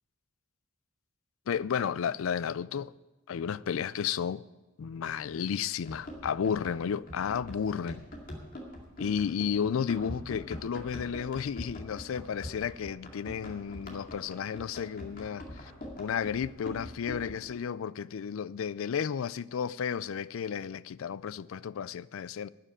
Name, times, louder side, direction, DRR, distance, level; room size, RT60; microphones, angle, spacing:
voice 1, 1.5-2.9 3.3-4.4 4.8-8.0 9.0-15.7 16.0-22.5, left 7 dB, 75° left, 0.4 m, -33 dB
Run, 5.8-17.5, equal, 45° left, 2.3 m, -44 dB
12.5 x 6.7 x 8.9 m
head